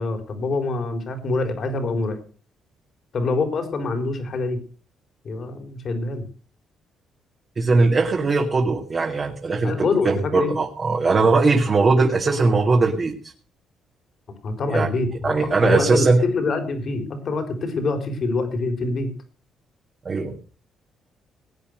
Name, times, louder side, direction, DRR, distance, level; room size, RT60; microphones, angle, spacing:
voice 1, 0.0-2.2 3.1-4.6 5.2-6.3 9.6-10.6 14.4-19.1, left 3 dB, 55° left, 6 dB, 4.2 m, -25 dB
voice 2, 7.6-13.3 14.7-14.9 15.2-16.2 20.0-20.3, right 3 dB, 40° right, 2 dB, 2.3 m, -20 dB
19.0 x 8.7 x 6.4 m, 0.40 s
cardioid pair, 90°, 0 cm